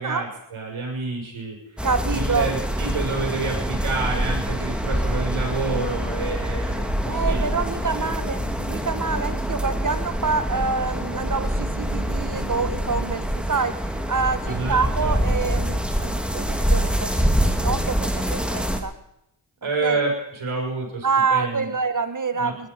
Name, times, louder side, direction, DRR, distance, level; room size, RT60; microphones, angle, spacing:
voice 1, 0.0-7.6 8.0-8.1 14.4-15.2 19.6-21.7 22.3-22.7, right 3 dB, 75° right, 0 dB, 6.1 m, -29 dB
sound 1, 1.8-18.8, equal, ahead, 2.6 m, -25 dB
voice 2, 1.8-2.5 7.0-18.9 19.8-20.0 21.0-22.7, right 4 dB, 40° right, 12 dB, 1.8 m, -26 dB
sound 2, 5.1-13.2, left 4 dB, 75° left, 5.8 m, -39 dB
20.5 x 13.0 x 5.4 m, 0.79 s
supercardioid pair, 40°, 48 cm